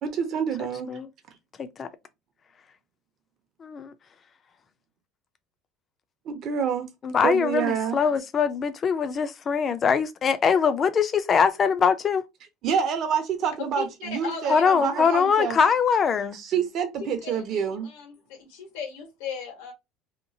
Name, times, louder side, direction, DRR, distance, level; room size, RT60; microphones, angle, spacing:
voice 1, 0.0-0.9 6.3-6.9 7.2-8.0 12.6-15.6 16.3-17.9, right 7 dB, 45° right, 0.6 m, -27 dB
voice 2, 3.6-3.9 7.0-12.2 14.5-16.4, left 6 dB, 25° left, 0.4 m, -22 dB
voice 3, 13.6-14.7 15.0-15.5 17.0-19.7, left 6 dB, 85° left, 1.3 m, -37 dB
2.9 x 2.3 x 2.6 m
cardioid pair, 155°, 0 cm